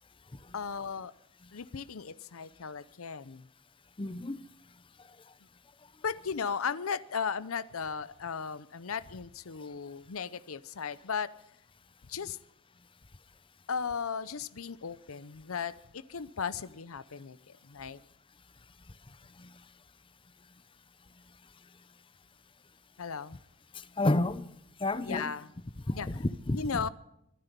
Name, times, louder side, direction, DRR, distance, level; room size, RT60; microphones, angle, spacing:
voice 1, 0.5-1.1 1.5-3.5 6.0-11.3 12.1-12.4 13.7-17.4 17.6-18.0 23.0-23.4 25.0-25.5 26.0-26.1 26.6-26.9, left 6 dB, 85° left, 0.7 m, -36 dB
voice 2, 4.0-4.4 19.4-19.5 24.0-24.4 24.8-25.3 25.9-26.8, left 2 dB, 25° left, 0.7 m, -30 dB
23.5 x 10.0 x 5.3 m
head